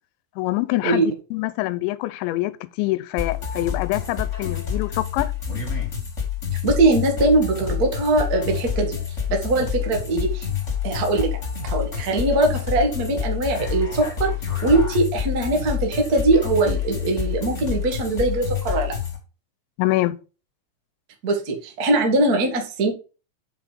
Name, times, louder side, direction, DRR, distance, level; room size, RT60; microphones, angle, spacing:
voice 1, 0.4-5.3 19.8-20.2, left 18 dB, 90° left, 2.9 m, -25 dB
sound 1, 3.2-19.2, left 8 dB, 20° left, 2.4 m, -28 dB
voice 2, 6.6-9.0 9.3-10.5 10.8-11.3 11.6-14.3 14.6-18.9 21.2-22.9, right 2 dB, 80° right, 0.8 m, -21 dB
6.8 x 6.0 x 5.1 m
omnidirectional pair, 5.1 m